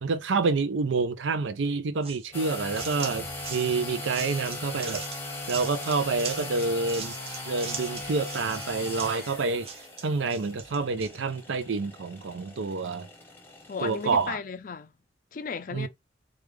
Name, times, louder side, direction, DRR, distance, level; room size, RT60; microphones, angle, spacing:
voice 1, 0.0-5.0 5.5-7.1 7.5-9.7 10.0-13.1 13.8-14.4 15.7-15.9, right 4 dB, 85° right, 0.5 m, -28 dB
sound 1, 2.0-11.2, right 6 dB, 30° right, 0.6 m, -41 dB
sound 2, 2.3-14.3, left 2 dB, 10° left, 0.9 m, -39 dB
voice 2, 13.7-14.9 15.3-15.9, left 5 dB, 45° left, 0.4 m, -35 dB
3.2 x 2.4 x 3.4 m
head